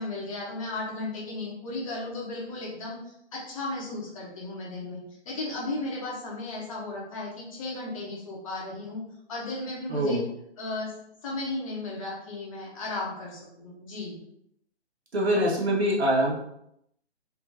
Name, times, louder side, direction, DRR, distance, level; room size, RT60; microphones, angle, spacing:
voice 1, 0.0-9.0 9.3-10.2 10.6-10.9 11.2-14.2, left 2 dB, 30° left, -4 dB, 1.0 m, -35 dB
voice 2, 9.9-10.3 15.1-16.3, equal, 70° right, -3 dB, 1.4 m, -24 dB
3.4 x 2.9 x 2.7 m, 0.75 s
figure-of-eight pair, 140°, 33 cm